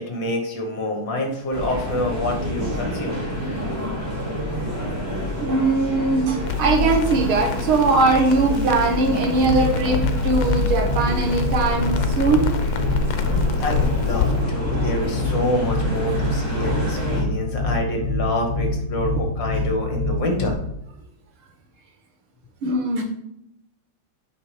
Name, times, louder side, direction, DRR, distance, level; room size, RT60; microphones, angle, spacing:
voice 1, 0.0-3.2 13.2-20.6 23.0-23.1, left 1 dB, 60° left, 2 dB, 2.2 m, -27 dB
sound 1, 1.5-17.2, equal, 35° right, 3.5 m, -29 dB
voice 2, 5.4-12.5 22.6-23.0, right 3 dB, 75° right, 3 dB, 2.2 m, -20 dB
Crackle, 6.4-14.3, left 7 dB, 85° left, 1.7 m, -28 dB
sound 2, 9.4-20.5, left 2 dB, 35° left, 1.8 m, -25 dB
8.3 x 5.3 x 5.0 m, 0.79 s
omnidirectional pair, 2.4 m